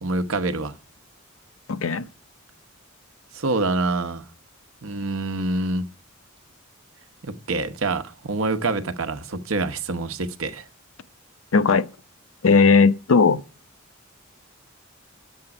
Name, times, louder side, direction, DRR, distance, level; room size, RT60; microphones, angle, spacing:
voice 1, 0.0-0.7 3.3-4.2 4.8-5.9 7.2-10.6, right 3 dB, 85° right, 0.9 m, -26 dB
voice 2, 1.7-2.0 11.5-11.8 12.4-13.4, left 4 dB, 80° left, 0.6 m, -17 dB
10.5 x 7.4 x 6.0 m
head